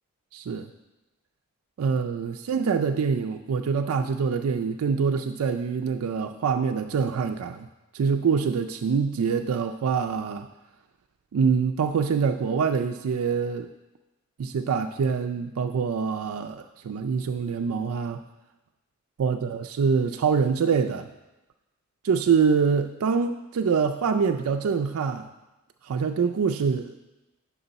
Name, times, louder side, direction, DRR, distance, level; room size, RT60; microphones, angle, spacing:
voice 1, 0.3-0.7 1.8-7.7 7.9-10.5 11.3-13.7 14.4-18.2 19.2-21.1 22.0-25.3 25.8-26.9, right 6 dB, 80° right, 5 dB, 0.4 m, -25 dB
8.8 x 6.1 x 4.0 m, 1.0 s
head